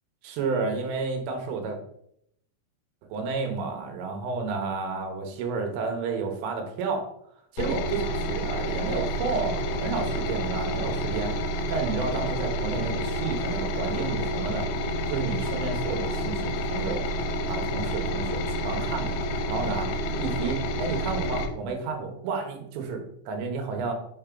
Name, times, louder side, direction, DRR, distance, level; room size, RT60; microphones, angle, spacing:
voice 1, 0.2-1.8 3.1-7.1 7.6-14.7 15.1-19.2 19.5-19.9 20.2-23.9, right 4 dB, 80° right, 4 dB, 3.6 m, -31 dB
sound 1, 7.6-21.5, equal, 90° left, 3.2 m, -29 dB
7.4 x 4.5 x 3.8 m, 0.73 s
omnidirectional pair, 5.7 m